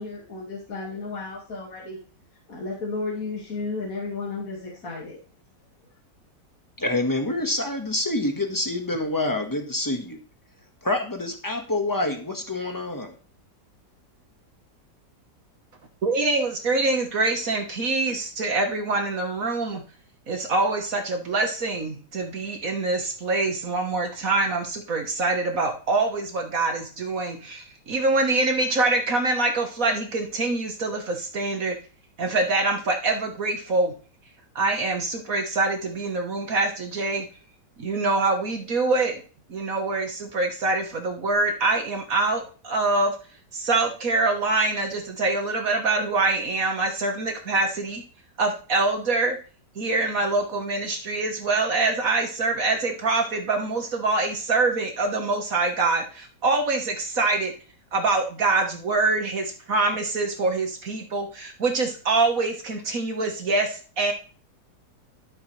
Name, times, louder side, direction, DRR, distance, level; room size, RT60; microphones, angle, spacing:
voice 1, 0.0-2.0 2.5-5.2, left 3 dB, 50° left, -4 dB, 2.5 m, -33 dB
voice 2, 6.8-10.2 10.8-13.1, left 2 dB, 10° left, 3 dB, 1.4 m, -27 dB
voice 3, 16.0-19.8 20.3-31.8 32.2-33.9 34.5-37.3 37.8-39.2 39.5-43.1 43.5-48.0 48.4-49.4 49.7-57.5 57.9-64.1, right 3 dB, 55° right, 4 dB, 1.7 m, -25 dB
13.0 x 8.0 x 3.3 m, 0.39 s
omnidirectional pair, 1.9 m